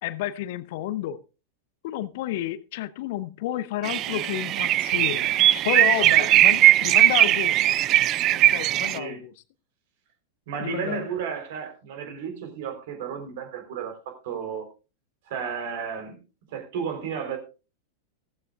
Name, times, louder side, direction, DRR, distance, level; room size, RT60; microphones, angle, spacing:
voice 1, 0.0-1.2 1.8-7.6 8.3-9.3 10.6-11.0, left 12 dB, 50° left, 0.8 m, -31 dB
sound 1, 3.8-9.0, right 14 dB, 35° right, 0.5 m, -19 dB
voice 2, 6.0-6.4 8.9-9.2 10.5-14.7 15.3-16.2 16.5-17.4, right 6 dB, 50° right, 3.8 m, -33 dB
16.0 x 14.5 x 2.4 m
figure-of-eight pair, 90°, 0 cm